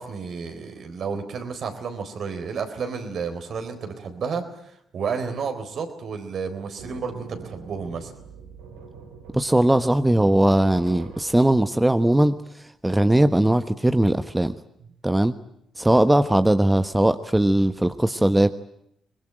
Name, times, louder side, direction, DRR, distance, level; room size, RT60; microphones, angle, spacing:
voice 1, 0.0-4.4 4.9-8.1, right 5 dB, 60° right, 7 dB, 4.1 m, -31 dB
sound 1, 6.8-11.8, right 5 dB, 85° right, 5.0 m, -44 dB
voice 2, 9.3-12.3 12.8-14.5 15.0-15.3 15.8-18.6, right 1 dB, 10° right, 10 dB, 1.2 m, -19 dB
24.5 x 21.0 x 9.1 m, 0.76 s
hypercardioid pair, 50°, 0 cm